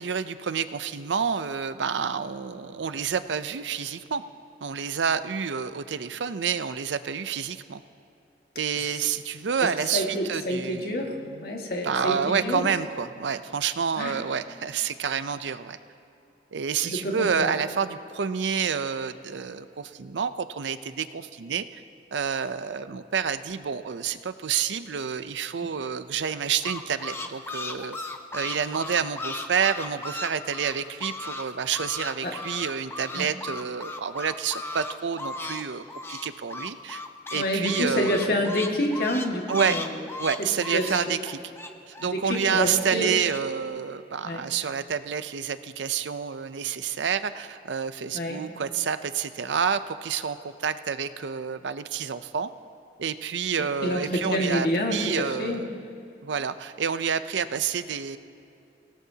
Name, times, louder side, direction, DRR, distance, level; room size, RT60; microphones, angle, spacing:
voice 1, 0.0-4.2 4.6-7.8 8.6-11.0 11.3-11.5 11.8-15.8 16.5-21.8 22.1-28.0 28.3-37.0 37.3-38.3 39.5-39.8 40.2-41.4 41.9-52.5 53.0-55.7 56.2-58.2, right 7 dB, 85° right, 12 dB, 0.6 m, -29 dB
voice 2, 9.9-12.7 14.0-14.1 16.8-17.5 32.2-32.3 33.2-33.3 37.3-39.9 40.7-41.1 42.2-43.2 44.2-44.4 48.1-48.4 53.8-55.7, left 1 dB, 55° left, 1 dB, 1.9 m, -28 dB
sound 1, 26.3-31.4 31.7-35.6 35.9-42.4 42.8-43.4, left 2 dB, 15° left, 0.7 m, -36 dB
25.5 x 17.5 x 2.8 m, 2.7 s
head